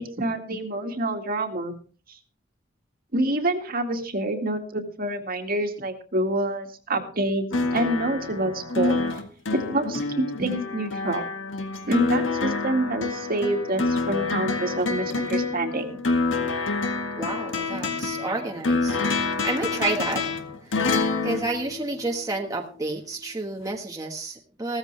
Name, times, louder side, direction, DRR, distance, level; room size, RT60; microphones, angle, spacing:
voice 1, 0.0-1.7 3.1-7.5 7.7-9.0 9.5-11.3 11.9-15.9, right 1 dB, 50° right, 5 dB, 2.1 m, -27 dB
sound 1, 7.5-22.4 23.7-23.8, left 3 dB, 70° left, 1.8 m, -27 dB
voice 2, 17.2-19.0 19.2-20.2 21.2-24.8, right 2 dB, 20° right, 0 dB, 1.4 m, -30 dB
16.0 x 14.0 x 3.3 m, 0.39 s
head